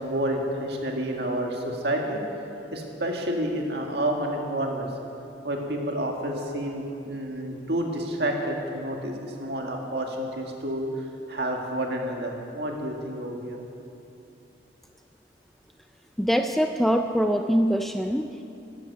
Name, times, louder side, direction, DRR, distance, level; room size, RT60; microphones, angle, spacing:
voice 1, 0.0-2.2 2.7-4.9 5.4-13.6, right 1 dB, 60° right, 1 dB, 1.9 m, -29 dB
voice 2, 16.2-18.4, equal, ahead, 6 dB, 0.4 m, -23 dB
13.0 x 10.5 x 8.4 m, 2.8 s
head